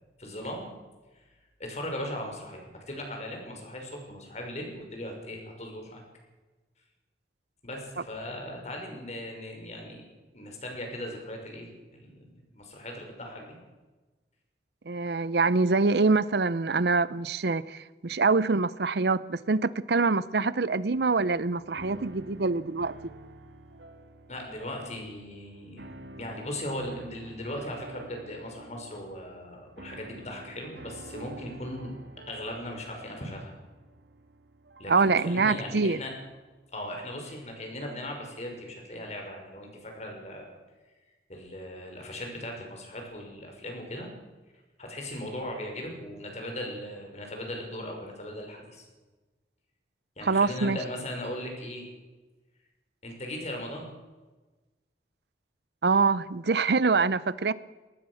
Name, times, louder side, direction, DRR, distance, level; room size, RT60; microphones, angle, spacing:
voice 1, 0.2-0.7 1.6-6.0 7.6-10.0 10.3-13.6 24.3-32.0 32.3-33.5 34.8-36.1 36.7-40.5 41.3-44.1 44.8-48.9 50.2-51.8 53.0-53.9, left 1 dB, 40° left, 5.8 m, -38 dB
voice 2, 14.9-22.9 34.9-36.0 50.2-50.8 55.8-57.5, right 4 dB, 70° right, 0.7 m, -25 dB
sound 1, 20.9-37.1, right 1 dB, 85° right, 1.8 m, -50 dB
22.5 x 18.5 x 6.4 m
head